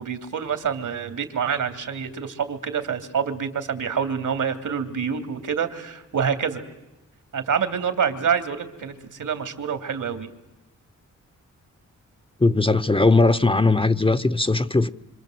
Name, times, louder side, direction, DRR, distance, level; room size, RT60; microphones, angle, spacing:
voice 1, 0.0-6.6 7.3-10.3, right 7 dB, 75° right, 2.9 m, -27 dB
voice 2, 12.4-14.9, left 3 dB, 15° left, 0.9 m, -19 dB
26.5 x 26.5 x 7.9 m
cardioid pair, 90°, 31 cm